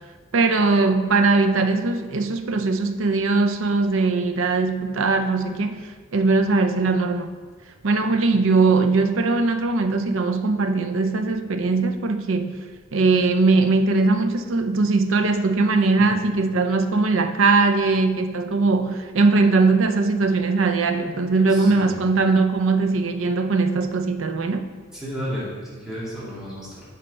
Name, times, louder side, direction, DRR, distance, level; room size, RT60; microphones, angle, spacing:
voice 1, 0.3-7.3 7.8-12.6 12.9-24.7, right 3 dB, 70° right, 8 dB, 0.6 m, -20 dB
voice 2, 21.5-21.9 24.9-26.8, equal, 5° right, -10 dB, 2.4 m, -32 dB
8.3 x 4.4 x 5.3 m, 1.4 s
head